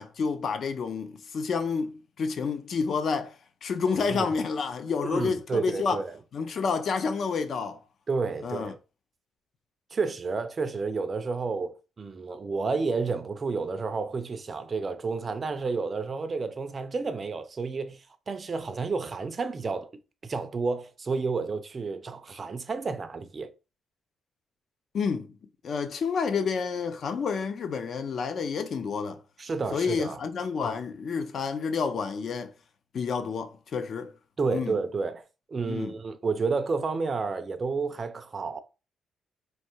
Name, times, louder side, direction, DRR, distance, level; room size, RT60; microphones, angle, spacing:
voice 1, 0.0-3.3 3.6-6.0 6.3-7.8 8.4-8.7 24.9-25.4 25.6-29.2 29.7-32.5 32.9-34.1 34.5-34.7 35.7-35.9, left 5 dB, 45° left, 0.5 m, -29 dB
voice 2, 5.0-6.2 8.1-8.8 9.9-19.9 20.2-23.5 29.4-30.2 34.4-35.2 35.5-38.6, right 4 dB, 25° right, 0.5 m, -30 dB
3.3 x 2.7 x 4.4 m
cardioid pair, 165°, 0 cm